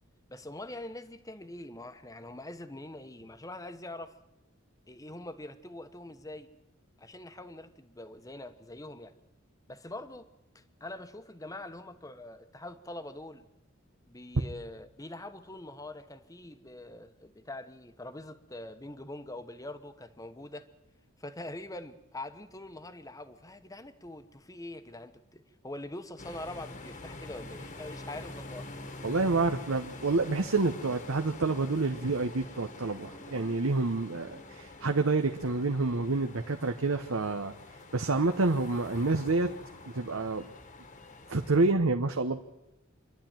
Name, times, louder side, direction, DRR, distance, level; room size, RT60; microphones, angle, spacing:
voice 1, 0.3-4.1 4.9-6.5 7.0-9.1 9.7-10.3 10.5-13.4 14.1-20.7 21.2-28.7, left 1 dB, 15° left, 10 dB, 1.1 m, -44 dB
sound 1, 26.2-41.7, left 2 dB, 40° left, 1.5 m, -46 dB
voice 2, 29.0-37.5 37.9-39.5 39.9-40.4 41.3-42.4, right 3 dB, 80° right, 5 dB, 1.0 m, -28 dB
26.0 x 11.5 x 9.0 m, 0.91 s
head